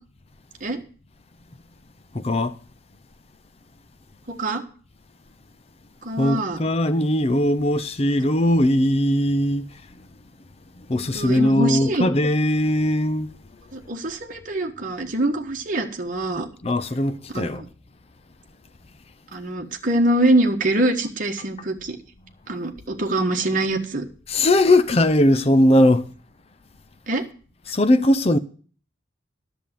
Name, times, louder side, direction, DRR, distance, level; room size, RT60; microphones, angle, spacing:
voice 1, 2.1-2.6 6.2-10.0 10.8-13.3 16.6-17.6 24.3-26.1 27.7-28.4, left 1 dB, 30° left, 0.6 m, -19 dB
voice 2, 4.3-4.6 6.0-6.6 10.9-12.1 13.7-16.5 17.3-17.6 19.3-22.0 22.5-24.1 27.1-27.2, right 1 dB, 45° right, 1.3 m, -24 dB
10.5 x 7.0 x 7.5 m
head